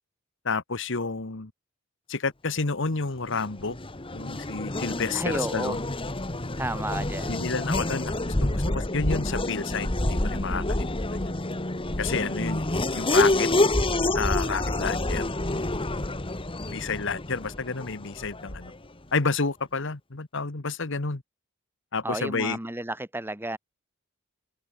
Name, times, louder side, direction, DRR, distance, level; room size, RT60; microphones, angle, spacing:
voice 1, 0.4-1.5 2.1-3.8 4.1-5.8 7.3-11.3 12.0-12.7 12.9-13.5 14.1-15.2 16.6-18.7 19.1-21.2 21.9-22.6, left 4 dB, 65° left, 1.4 m, -30 dB
Race car auto racing / Accelerating revving vroom, 3.2-18.8, left 2 dB, 25° left, 1.7 m, -28 dB
voice 2, 5.1-5.7 6.6-7.3 22.0-23.6, right 1 dB, 10° right, 1.8 m, -32 dB
open air
head